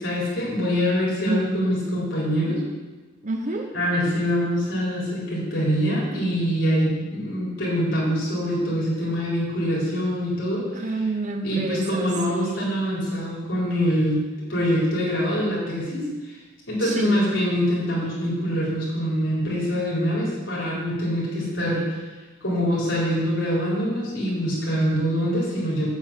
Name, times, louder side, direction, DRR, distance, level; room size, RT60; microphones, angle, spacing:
voice 1, 0.0-2.6 3.7-10.7 11.4-14.2 14.5-16.0 16.7-22.0 22.4-25.9, equal, 85° left, -6 dB, 4.3 m, -24 dB
voice 2, 3.2-3.7 10.8-12.7 16.8-17.3, right 2 dB, 40° right, 4 dB, 0.9 m, -28 dB
8.4 x 8.0 x 7.6 m, 1.3 s
head